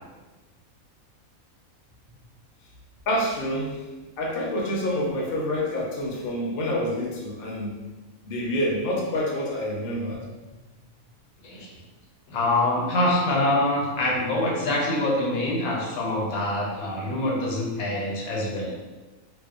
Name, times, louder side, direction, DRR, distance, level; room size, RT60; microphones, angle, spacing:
voice 1, 3.1-3.8 4.2-7.8 8.2-10.3, left 1 dB, 60° left, -2 dB, 0.6 m, -27 dB
voice 2, 11.4-11.8 12.3-18.7, left 1 dB, 80° left, -2 dB, 1.1 m, -25 dB
2.6 x 2.1 x 2.3 m, 1.2 s
omnidirectional pair, 1.5 m